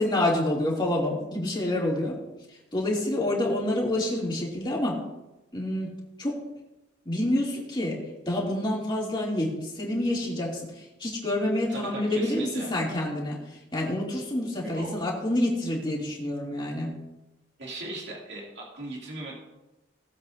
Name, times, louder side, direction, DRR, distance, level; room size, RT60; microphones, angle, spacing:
voice 1, 0.0-2.1 2.7-5.0 5.5-5.9 6.2-6.3 7.0-8.0 8.3-13.4 13.7-16.9, left 1 dB, 25° left, -4 dB, 2.6 m, -27 dB
voice 2, 11.7-12.7 14.6-14.9 17.6-19.4, right 2 dB, 65° right, -4 dB, 2.6 m, -37 dB
19.5 x 7.9 x 2.7 m, 1.0 s
head